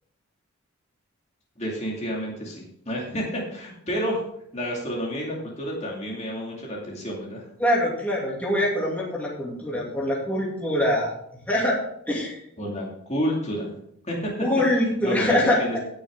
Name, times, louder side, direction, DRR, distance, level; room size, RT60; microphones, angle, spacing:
voice 1, 1.6-4.2 4.5-7.4 12.6-13.7 14.0-14.3 15.0-15.8, equal, 30° left, -3 dB, 2.4 m, -30 dB
voice 2, 7.6-11.1 11.5-11.8 12.1-12.3 14.4-15.8, left 1 dB, 5° left, -5 dB, 2.6 m, -23 dB
17.0 x 6.5 x 3.8 m, 0.72 s
head